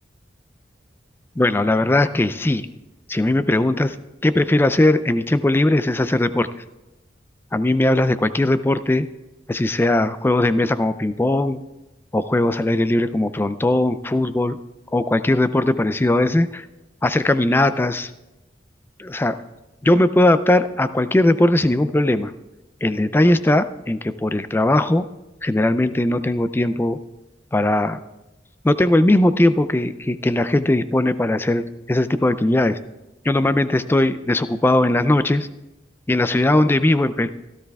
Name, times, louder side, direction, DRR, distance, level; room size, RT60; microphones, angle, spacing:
voice 1, 1.4-2.7 3.1-4.0 4.2-6.5 7.5-9.1 9.5-11.6 12.1-14.6 14.9-16.7 17.0-18.1 19.0-19.4 19.8-22.3 22.8-25.0 25.4-27.0 27.5-28.0 28.6-32.8 33.2-35.5 36.1-37.3, left 1 dB, 10° left, 12 dB, 0.3 m, -19 dB
16.5 x 12.5 x 2.3 m, 1.0 s
head